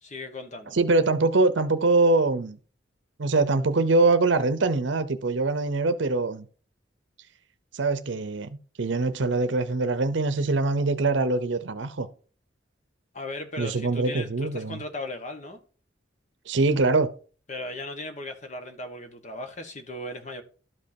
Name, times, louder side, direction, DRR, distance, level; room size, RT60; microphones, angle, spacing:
voice 1, 0.0-0.8 13.1-15.6 17.5-20.4, left 2 dB, 40° left, 1.3 m, -37 dB
voice 2, 0.7-2.6 3.2-6.5 7.7-12.1 13.6-14.8 16.5-17.1, right 3 dB, 70° right, 0.7 m, -23 dB
12.5 x 5.4 x 2.7 m
head